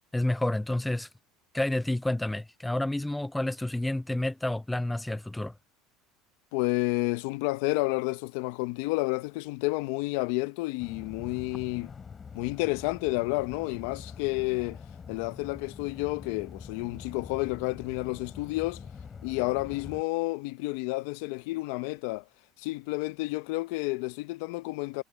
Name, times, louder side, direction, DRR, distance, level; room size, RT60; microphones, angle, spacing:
voice 1, 0.1-1.1 1.5-5.5, left 1 dB, 5° left, 0.3 m, -29 dB
voice 2, 6.5-11.9 12.3-14.8 15.1-18.8 19.2-22.2 22.6-25.0, left 22 dB, 75° left, 0.8 m, -30 dB
sound 1, 10.8-20.0, left 6 dB, 25° left, 5.5 m, -45 dB
supercardioid pair, 115°, 0 cm